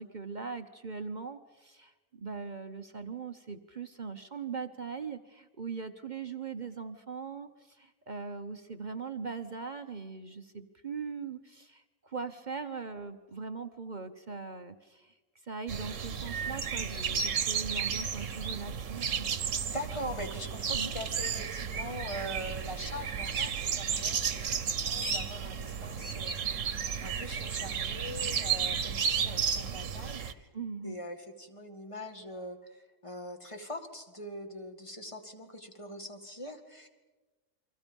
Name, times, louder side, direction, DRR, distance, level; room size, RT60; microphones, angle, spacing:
voice 1, 0.0-15.1 15.4-19.3 20.7-20.9 30.5-31.0, right 5 dB, 40° right, 7 dB, 1.0 m, -40 dB
sound 1, 15.7-30.3, right 7 dB, 70° right, 1.4 m, -33 dB
voice 2, 19.7-24.2 24.6-26.3 27.0-30.5 30.8-36.9, equal, 25° left, 4 dB, 2.2 m, -42 dB
29.5 x 24.5 x 5.4 m, 1.2 s
omnidirectional pair, 1.4 m